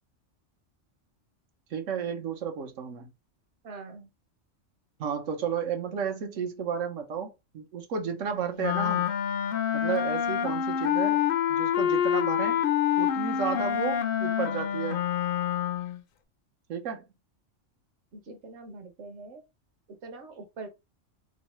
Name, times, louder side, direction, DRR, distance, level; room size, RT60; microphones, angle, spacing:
voice 1, 1.7-3.1 5.0-9.1 9.7-12.7 13.0-15.0 16.7-17.0, right 7 dB, 90° right, 1.2 m, -32 dB
voice 2, 3.6-4.1 10.8-10.9 18.3-19.4 20.0-20.7, right 3 dB, 65° right, 1.1 m, -43 dB
Wind instrument woodwind instrument, 8.6-16.0, left 9 dB, 60° left, 0.6 m, -27 dB
3.5 x 3.1 x 3.0 m
omnidirectional pair, 1.3 m